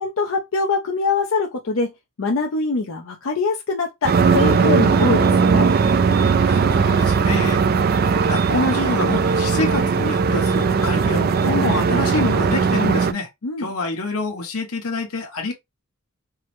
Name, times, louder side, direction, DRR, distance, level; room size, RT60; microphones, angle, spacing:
voice 1, 0.0-1.9 2.2-5.7 13.4-13.7, left 4 dB, 65° left, 0.6 m, -23 dB
sound 1, 4.0-13.1, right 5 dB, 45° right, 0.3 m, -18 dB
voice 2, 6.4-7.7 8.3-13.3 13.6-15.5, left 2 dB, 85° left, 1.1 m, -26 dB
4.6 x 2.1 x 3.1 m
head